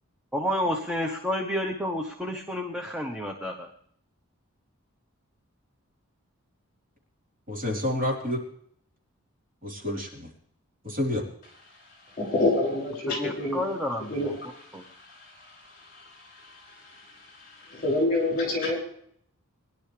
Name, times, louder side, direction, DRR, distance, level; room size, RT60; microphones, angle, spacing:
voice 1, 0.3-3.7 13.1-14.3 14.7-14.8, left 1 dB, 5° right, 2 dB, 1.1 m, -30 dB
voice 2, 7.5-8.4 9.6-10.3 10.8-11.2, left 1 dB, 40° right, -2 dB, 4.0 m, -29 dB
voice 3, 12.1-13.6 14.1-18.8, left 2 dB, 40° left, -1 dB, 6.3 m, -29 dB
22.5 x 11.0 x 3.4 m, 0.66 s
head